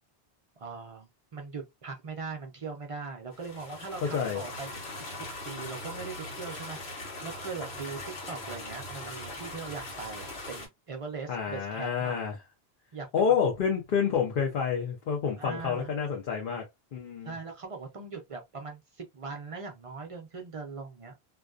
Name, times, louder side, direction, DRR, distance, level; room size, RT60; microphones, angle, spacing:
voice 1, 0.6-4.7 5.1-12.2 12.9-13.1 15.4-15.9 17.2-21.1, right 4 dB, 45° right, 0.4 m, -40 dB
sound 1, 3.3-10.7, left 2 dB, 85° left, 1.1 m, -40 dB
voice 2, 4.0-4.4 11.3-12.4 13.1-16.6 16.9-17.3, left 7 dB, 60° left, 0.8 m, -28 dB
2.3 x 2.2 x 2.3 m
omnidirectional pair, 1.0 m